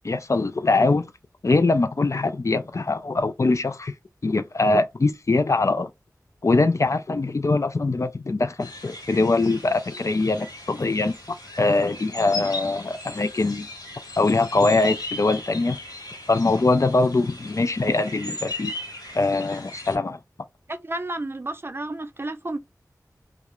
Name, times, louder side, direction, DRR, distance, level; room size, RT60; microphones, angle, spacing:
voice 1, 0.0-1.1 1.4-3.9 4.2-5.9 6.4-11.1 11.6-13.7 14.2-15.8 16.3-18.7 19.1-20.2, left 3 dB, 50° left, 0.3 m, -22 dB
sound 1, 8.6-20.0, left 2 dB, 75° left, 1.1 m, -37 dB
voice 2, 20.7-22.6, right 2 dB, 35° right, 0.4 m, -31 dB
2.4 x 2.0 x 2.9 m
wide cardioid pair, 50°, 7 cm